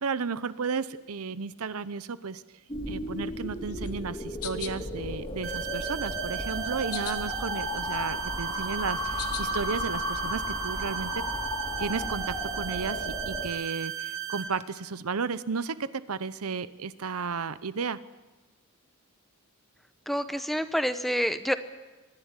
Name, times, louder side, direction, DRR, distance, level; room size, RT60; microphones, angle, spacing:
voice 1, 0.0-2.4 2.9-11.2 11.8-18.0, right 5 dB, 80° right, 15 dB, 0.8 m, -33 dB
sound 1, 2.7-13.5, left 2 dB, 25° left, 3.2 m, -34 dB
sound 2, 3.7-4.8 5.3-6.1 6.5-7.6 7.9-9.6, left 11 dB, 85° left, 1.4 m, -41 dB
sound 3, 5.4-14.4, right 10 dB, 65° right, 3.7 m, -35 dB
voice 2, 20.1-21.5, equal, ahead, 10 dB, 0.8 m, -27 dB
25.0 x 11.5 x 9.8 m, 1.2 s
head